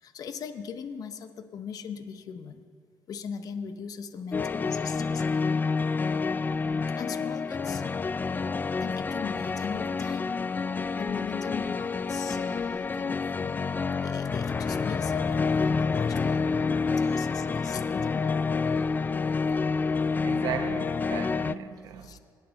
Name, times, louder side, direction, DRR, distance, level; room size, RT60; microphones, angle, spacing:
voice 1, 0.0-2.6 3.1-5.5 7.0-7.8 8.8-10.3 11.0-13.6 14.0-18.6 22.0-22.2, left 6 dB, 65° left, 0.8 m, -40 dB
sound 1, 4.3-21.5, left 4 dB, 25° left, 0.3 m, -28 dB
voice 2, 20.2-22.2, right 8 dB, 80° right, 0.9 m, -36 dB
21.0 x 9.2 x 3.9 m
cardioid pair, 75°, 7 cm